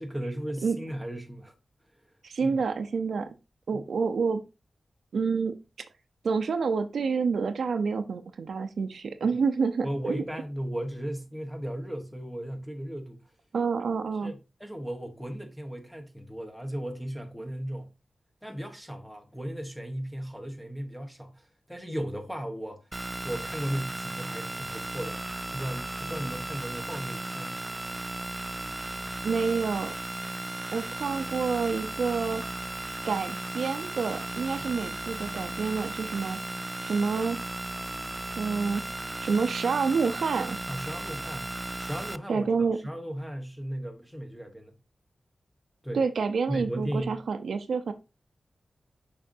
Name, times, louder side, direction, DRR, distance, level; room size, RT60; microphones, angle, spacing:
voice 1, 0.0-1.5 2.4-2.6 3.7-3.8 9.2-9.3 9.8-13.2 14.2-17.9 18.4-22.9 23.2-27.6 34.6-34.7 40.7-42.5 42.8-44.7 45.8-46.0 46.5-47.2, equal, ahead, 1.2 m, -36 dB
voice 2, 2.2-3.3 3.7-4.4 5.1-5.6 6.2-10.2 13.5-14.3 29.2-29.9 30.7-32.4 33.1-36.4 36.8-37.4 38.4-38.8 39.2-40.6 42.3-42.8 45.9-47.9, right 5 dB, 85° right, 0.7 m, -28 dB
sound 1, 22.9-42.2, right 1 dB, 20° right, 0.3 m, -36 dB
6.7 x 5.1 x 2.7 m
wide cardioid pair, 75°, 0 cm